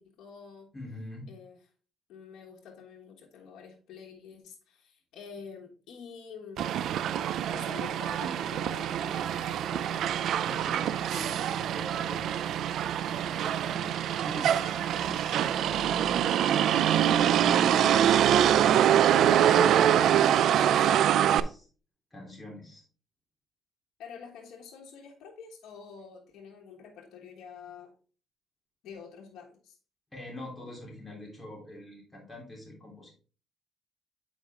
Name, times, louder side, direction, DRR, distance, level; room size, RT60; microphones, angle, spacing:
voice 1, 0.0-0.7 1.3-1.6 2.1-6.9 7.5-10.1 24.0-27.9 28.8-29.8, left 6 dB, 85° left, 0 dB, 1.3 m, -47 dB
voice 2, 0.7-1.3 10.4-12.4 13.0-16.4 17.2-19.9 20.3-21.7 22.1-22.8 30.1-33.1, left 1 dB, 10° left, -2 dB, 3.4 m, -45 dB
Motor vehicle (road), 6.6-21.4, right 10 dB, 75° right, 0.4 m, -25 dB
8.1 x 5.1 x 3.6 m, 0.38 s
cardioid pair, 90°, 0 cm